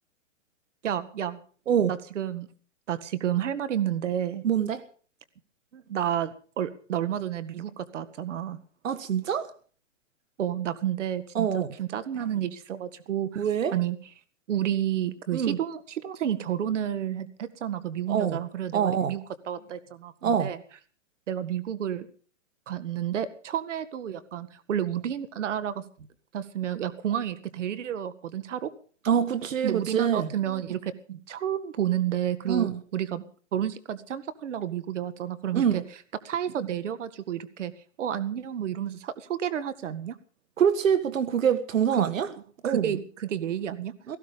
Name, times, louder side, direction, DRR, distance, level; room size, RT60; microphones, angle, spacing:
voice 1, 0.8-1.4 1.9-2.5 2.9-4.4 5.7-8.6 10.4-13.4 13.7-14.0 14.5-19.2 19.5-20.6 21.3-22.1 22.7-25.9 26.3-28.7 29.6-33.2 33.5-35.8 36.2-37.7 38.0-40.2 42.0-42.1 42.6-43.9, right 10 dB, 65° right, 13 dB, 1.9 m, -30 dB
voice 2, 4.4-4.8 8.8-9.5 11.3-11.7 13.3-13.7 15.3-15.6 18.1-18.4 18.7-19.1 20.2-20.5 29.0-30.3 32.5-32.8 35.5-35.8 40.6-42.3 42.6-42.9 44.1-44.2, right 8 dB, 90° right, 13 dB, 1.7 m, -25 dB
18.0 x 15.5 x 5.2 m, 0.43 s
hypercardioid pair, 160°, 38 cm